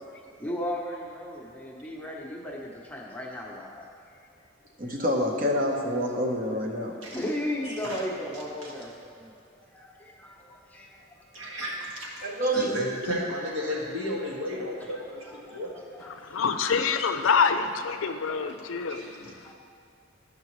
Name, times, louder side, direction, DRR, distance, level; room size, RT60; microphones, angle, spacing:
voice 1, 0.0-4.2 4.8-5.0 6.9-11.6 14.6-14.7 14.9-16.7 18.8-19.1 19.4-19.5, left 1 dB, 10° left, -3 dB, 0.8 m, -37 dB
voice 2, 4.8-7.1 12.2-12.8, equal, 40° right, 1 dB, 0.9 m, -27 dB
voice 3, 7.6-8.0 8.6-8.7 11.3-15.8 18.9-19.3, equal, 75° right, -5 dB, 1.9 m, -34 dB
voice 4, 16.1-19.5, left 5 dB, 75° left, 8 dB, 0.5 m, -26 dB
13.5 x 5.4 x 3.1 m, 2.3 s
head